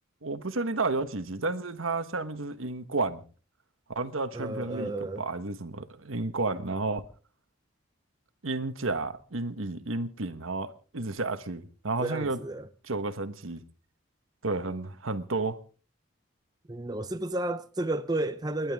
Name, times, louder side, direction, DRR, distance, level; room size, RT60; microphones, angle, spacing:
voice 1, 0.2-3.2 3.9-4.9 5.2-7.0 8.4-12.4 12.8-13.6 14.4-15.6, right 3 dB, 85° right, 1.3 m, -31 dB
voice 2, 4.3-5.2 12.0-12.7 16.7-18.7, right 2 dB, 20° right, 0.6 m, -32 dB
29.5 x 11.0 x 3.6 m
head